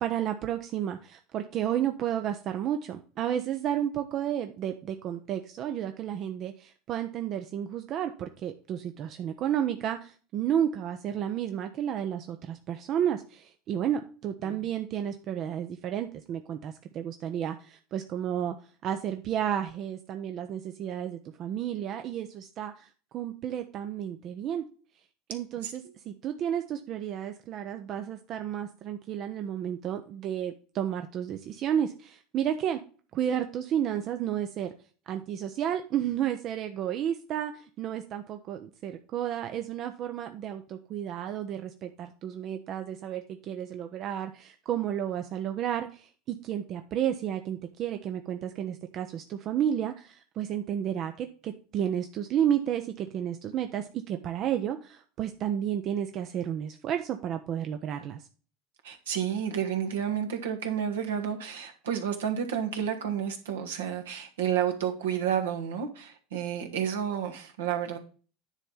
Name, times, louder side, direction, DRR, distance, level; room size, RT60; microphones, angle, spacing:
voice 1, 0.0-18.5 18.8-24.6 25.3-32.8 33.1-34.7 35.1-58.2, right 10 dB, 45° right, 0.7 m, -32 dB
voice 2, 58.8-68.0, right 8 dB, 75° right, 1.3 m, -30 dB
10.0 x 3.4 x 5.6 m
hypercardioid pair, 75°, 0 cm